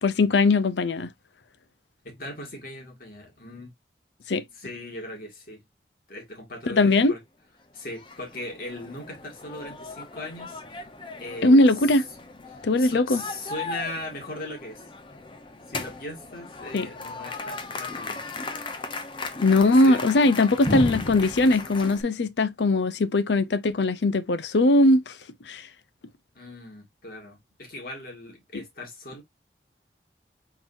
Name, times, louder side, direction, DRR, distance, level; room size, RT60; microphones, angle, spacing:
voice 1, 0.0-1.1 4.3-4.4 6.7-7.1 11.4-12.0 12.6-13.2 16.7-16.9 19.4-25.1 25.5-25.6, left 2 dB, 80° left, 0.6 m, -20 dB
voice 2, 2.0-3.7 4.5-5.6 6.1-7.2 7.7-10.8 11.2-12.0 12.5-14.9 15.7-18.2 19.5-20.0 26.4-29.2, left 2 dB, 55° left, 2.0 m, -39 dB
sound 1, 7.9-22.0, left 2 dB, 30° left, 0.7 m, -36 dB
4.4 x 3.9 x 2.5 m
head